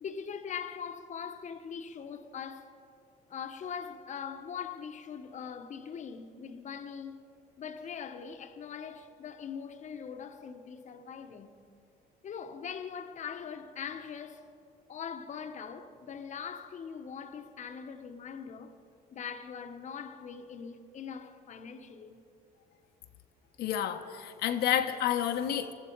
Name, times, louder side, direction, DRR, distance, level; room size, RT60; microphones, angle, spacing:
voice 1, 0.0-2.7 3.3-7.2 7.6-11.6 12.2-14.5 14.9-18.8 19.1-22.2, left 7 dB, 45° left, 1.1 m, -41 dB
voice 2, 23.6-25.7, left 10 dB, 70° left, 1.0 m, -30 dB
21.0 x 14.5 x 4.6 m
cardioid pair, 110°, 17 cm